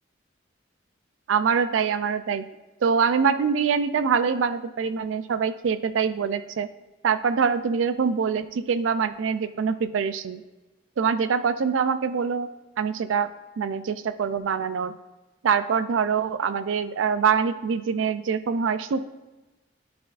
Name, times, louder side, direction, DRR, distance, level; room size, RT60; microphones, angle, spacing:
voice 1, 1.3-2.5 2.8-6.7 7.0-10.4 11.0-12.5 12.8-13.3 13.6-14.9 15.4-19.0, right 6 dB, 90° right, 11 dB, 0.4 m, -24 dB
11.0 x 4.2 x 2.5 m, 1.1 s
head